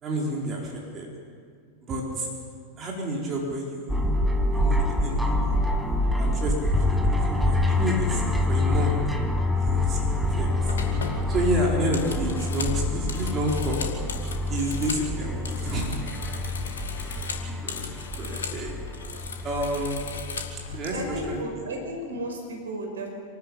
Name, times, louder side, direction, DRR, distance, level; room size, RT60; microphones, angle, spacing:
voice 1, 0.0-1.1 1.8-2.3 2.8-3.9 4.5-5.6 6.2-9.0 9.5-10.7 11.3-13.8 14.5-16.0 17.0-17.3 17.6-18.7 19.4-20.0 20.7-21.6, right 1 dB, 25° right, -2 dB, 4.3 m, -30 dB
sound 1, 3.9-21.4, left 2 dB, 5° right, 2.0 m, -26 dB
sound 2, 10.1-10.3 10.7-15.1 15.4-18.6 18.9-20.8, left 5 dB, 65° left, 2.7 m, -37 dB
voice 2, 20.9-23.1, right 1 dB, 65° right, 2 dB, 5.4 m, -33 dB
27.5 x 13.0 x 8.5 m, 2.1 s
figure-of-eight pair, 90°, 0 cm